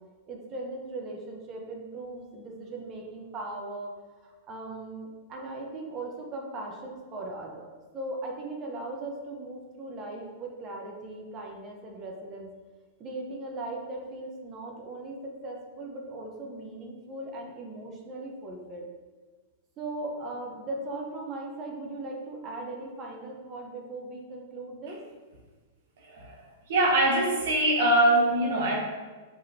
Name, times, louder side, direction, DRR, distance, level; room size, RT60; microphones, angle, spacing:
voice 1, 0.3-3.9 4.2-12.5 13.0-18.9 19.8-25.0, right 2 dB, 35° right, 1 dB, 0.9 m, -38 dB
voice 2, 26.0-26.4 26.7-28.8, right 1 dB, 70° right, -1 dB, 0.9 m, -23 dB
5.0 x 3.6 x 2.8 m, 1.3 s
hypercardioid pair, 120°, 0 cm